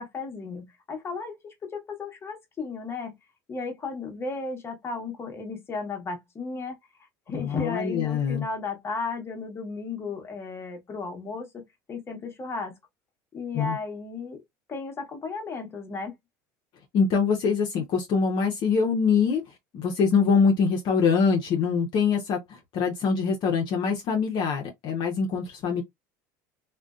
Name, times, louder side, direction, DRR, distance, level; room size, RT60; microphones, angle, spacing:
voice 1, 0.0-3.2 3.5-6.8 7.3-12.7 13.3-14.4 14.7-16.2, left 4 dB, 30° left, 0.9 m, -34 dB
voice 2, 7.3-8.5 13.5-13.8 16.9-19.4 19.7-25.8, left 5 dB, 55° left, 0.7 m, -24 dB
2.5 x 2.2 x 2.3 m
supercardioid pair, 100°, 9 cm